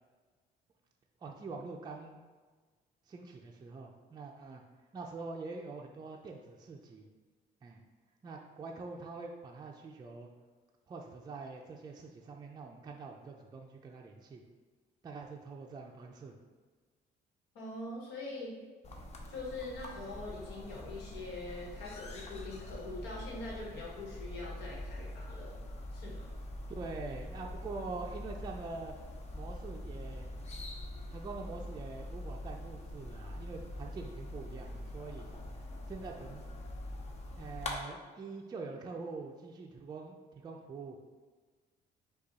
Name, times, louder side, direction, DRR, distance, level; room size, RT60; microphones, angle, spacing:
voice 1, 1.2-2.2 3.1-4.6 4.9-7.1 7.6-7.8 8.2-10.3 10.9-14.4 15.0-16.3 26.7-28.9 29.3-30.3 31.1-35.3 35.9-36.4 37.4-41.1, right 3 dB, 25° right, 0 dB, 0.4 m, -44 dB
voice 2, 17.5-18.5 19.3-25.5 25.9-26.3, left 2 dB, 85° left, -3 dB, 1.2 m, -43 dB
sound 1, 18.8-37.7, left 1 dB, 40° left, 0.7 m, -44 dB
5.0 x 2.3 x 4.0 m, 1.4 s
cardioid pair, 110°, 17 cm